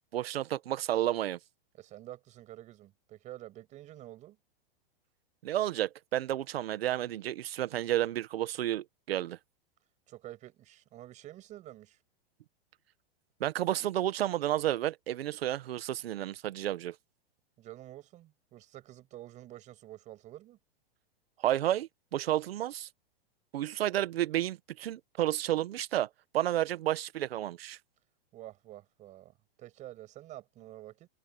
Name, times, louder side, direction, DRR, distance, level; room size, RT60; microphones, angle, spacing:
voice 1, 0.1-1.4 5.4-9.4 13.4-16.9 21.4-22.9 23.5-26.1 26.3-27.8, right 13 dB, 75° right, 1.4 m, -31 dB
voice 2, 1.8-4.4 10.1-12.0 17.6-20.6 28.3-31.1, right 14 dB, 25° right, 6.6 m, -49 dB
supercardioid pair, 165°, 30 cm